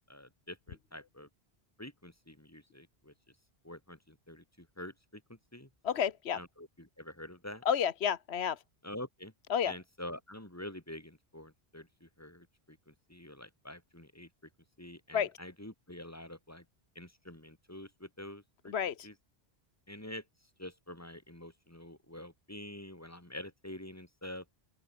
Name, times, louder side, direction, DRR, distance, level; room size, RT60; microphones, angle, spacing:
voice 1, 0.1-1.3 1.8-3.1 3.6-5.7 6.3-7.6 8.8-9.3 9.6-14.3 14.8-16.6 16.9-18.7 19.0-19.1 19.9-20.2 20.6-24.4, left 1 dB, 15° left, 3.1 m, -47 dB
voice 2, 5.8-6.4 7.7-8.6 9.5-9.7 15.1-15.3 18.7-19.1, left 8 dB, 80° left, 1.2 m, -30 dB
open air
omnidirectional pair, 1.1 m